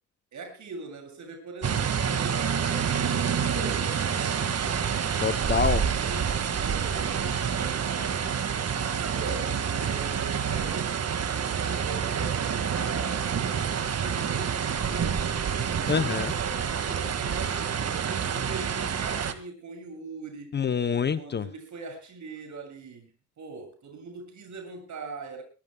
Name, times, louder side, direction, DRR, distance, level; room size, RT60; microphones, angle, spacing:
voice 1, 0.3-4.5 5.8-8.7 9.0-10.8 11.6-15.4 15.8-20.6 21.1-25.4, right 4 dB, 80° right, 5 dB, 7.5 m, -41 dB
sound 1, 1.6-19.3, right 7 dB, 60° right, 1.8 m, -28 dB
voice 2, 5.2-5.9 15.9-16.3 20.5-21.5, left 6 dB, 35° left, 13 dB, 0.6 m, -26 dB
23.0 x 19.0 x 2.2 m, 0.34 s
wide cardioid pair, 175°, 29 cm